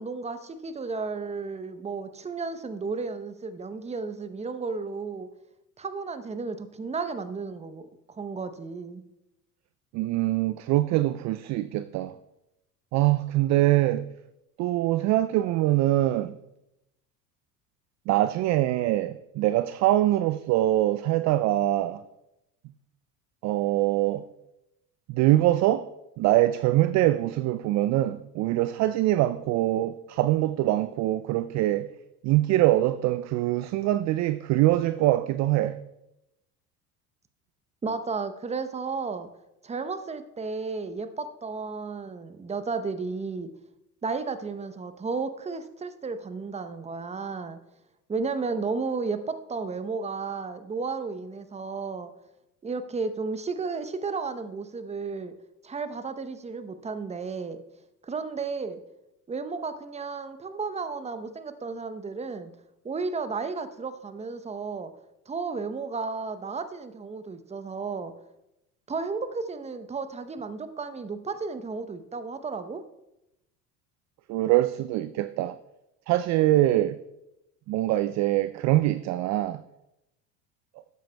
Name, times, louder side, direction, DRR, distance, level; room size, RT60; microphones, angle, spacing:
voice 1, 0.0-5.3 5.8-7.9 8.2-9.0 37.8-39.3 39.6-43.5 44.0-47.6 48.1-52.1 52.6-55.3 55.6-57.6 58.0-58.8 59.3-62.5 62.8-64.9 65.3-68.1 68.9-72.8, right 4 dB, 15° right, 0.7 m, -33 dB
voice 2, 9.9-12.1 12.9-14.0 14.6-16.4 18.1-22.0 23.4-24.2 25.1-25.9 26.2-31.9 32.2-35.8 74.3-75.6 76.1-77.0 77.7-79.6, right 15 dB, 40° right, 0.4 m, -23 dB
13.0 x 8.8 x 2.2 m
hypercardioid pair, 75°, 47 cm